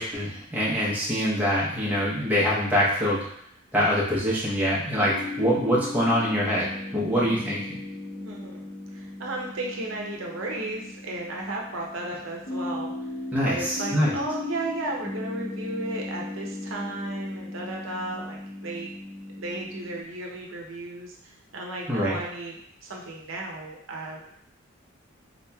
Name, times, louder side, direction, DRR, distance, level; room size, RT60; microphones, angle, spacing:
voice 1, 0.0-3.2 3.7-7.6 13.3-14.1 21.9-22.2, equal, 10° right, -7 dB, 0.8 m, -24 dB
sound 1, 4.9-20.0, left 2 dB, 70° left, 1.1 m, -37 dB
voice 2, 8.1-12.9 13.5-18.9 19.3-24.2, right 2 dB, 75° right, -1 dB, 0.7 m, -34 dB
4.0 x 3.0 x 2.3 m, 0.71 s
head